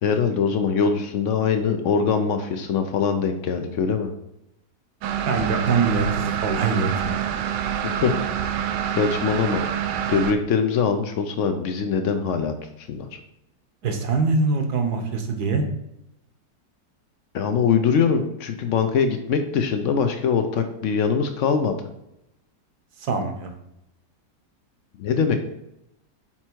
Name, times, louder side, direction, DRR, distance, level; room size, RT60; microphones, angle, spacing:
voice 1, 0.0-4.1 7.8-8.4 8.9-9.6 10.1-13.2 17.3-21.7 25.0-25.4, left 6 dB, 80° left, 7 dB, 0.6 m, -23 dB
sound 1, 5.0-10.3, right 9 dB, 90° right, 1.3 m, -26 dB
voice 2, 5.2-7.1 13.8-15.6 23.0-23.5, right 4 dB, 65° right, 5 dB, 1.4 m, -23 dB
5.9 x 4.4 x 4.5 m, 0.85 s
omnidirectional pair, 1.9 m